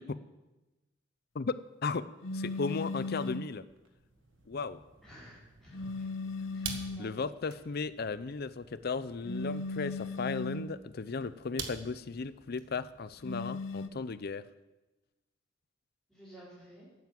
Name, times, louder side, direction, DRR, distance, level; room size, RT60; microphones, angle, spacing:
sound 1, 2.2-3.6 5.7-7.1 9.2-10.8 13.2-13.9, left 3 dB, 85° left, 0.8 m, -37 dB
voice 1, 2.3-3.6 4.5-4.8 6.6-14.4, left 4 dB, 55° left, 15 dB, 0.5 m, -36 dB
sound 2, 3.7-14.1, right 6 dB, 80° right, 1.6 m, -49 dB
voice 2, 5.0-6.1 6.5-7.2 16.1-16.9, equal, ahead, -11 dB, 5.0 m, -53 dB
12.0 x 9.3 x 7.5 m, 1.1 s
head